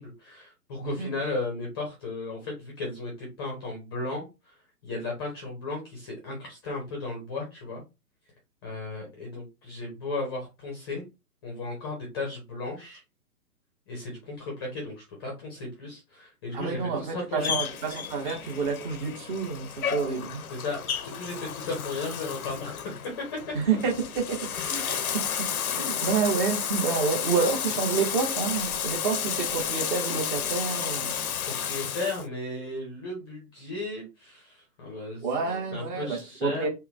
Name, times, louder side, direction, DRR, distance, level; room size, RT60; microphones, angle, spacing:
voice 1, 0.0-4.6 4.8-7.8 8.6-11.0 11.4-13.0 13.9-17.5 20.5-22.7 25.7-25.8 31.4-35.2 35.7-36.6, left 2 dB, 15° left, 0.6 m, -35 dB
voice 2, 16.5-20.5 23.5-31.1 35.2-36.7, right 5 dB, 30° right, 1.1 m, -29 dB
Bathtub (filling or washing), 17.4-32.2, left 8 dB, 60° left, 0.6 m, -32 dB
3.5 x 2.2 x 3.3 m
figure-of-eight pair, 125°, 48 cm